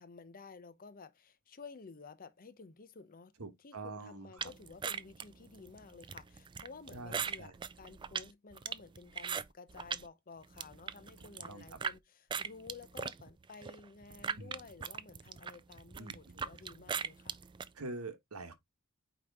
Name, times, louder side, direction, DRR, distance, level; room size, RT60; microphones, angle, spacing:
voice 1, 0.0-3.3 3.6-17.4, left 4 dB, 40° left, 0.7 m, -53 dB
voice 2, 3.4-4.5 6.9-7.5 11.5-11.8 14.4-14.5 16.0-16.5 17.7-18.5, right 3 dB, 85° right, 1.3 m, -45 dB
sound 1, 4.4-10.1 10.4-12.0 12.3-17.7, right 6 dB, 20° right, 0.3 m, -40 dB
8.7 x 3.0 x 3.5 m
head